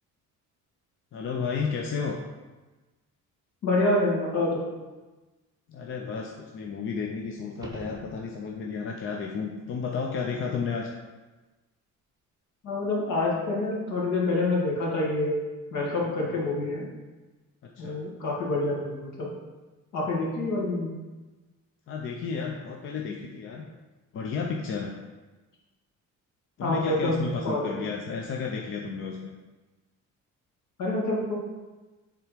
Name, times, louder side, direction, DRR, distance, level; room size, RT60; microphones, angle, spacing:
voice 1, 1.1-2.2 5.7-10.9 16.3-16.4 17.8-18.0 21.9-23.6 24.1-24.9 26.6-29.3, left 5 dB, 40° left, 0 dB, 0.6 m, -32 dB
voice 2, 3.6-4.7 12.6-15.3 15.7-16.9 17.8-19.3 19.9-20.9 26.6-27.7 30.8-31.3, left 2 dB, 65° left, -4 dB, 2.2 m, -27 dB
sound 1, 7.5-8.7 13.6-13.7, right 1 dB, 10° right, 0.7 m, -43 dB
7.5 x 3.6 x 5.1 m, 1.2 s
cardioid pair, 150°, 31 cm